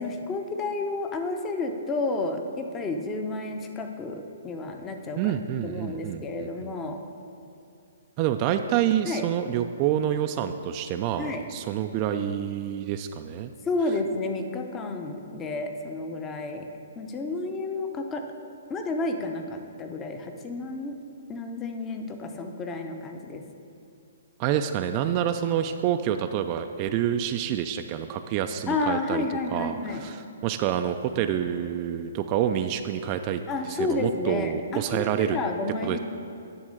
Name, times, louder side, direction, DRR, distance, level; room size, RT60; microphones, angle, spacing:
voice 1, 0.0-7.0 9.1-9.2 11.2-11.4 13.6-16.6 17.0-18.2 18.7-21.0 21.3-23.4 28.7-30.0 33.5-36.0, left 3 dB, 20° left, 5 dB, 0.6 m, -31 dB
voice 2, 5.2-6.7 8.2-13.5 24.4-35.4 35.8-36.0, right 10 dB, 30° right, 7 dB, 0.3 m, -28 dB
10.5 x 3.6 x 6.4 m, 2.5 s
hypercardioid pair, 150°, 0 cm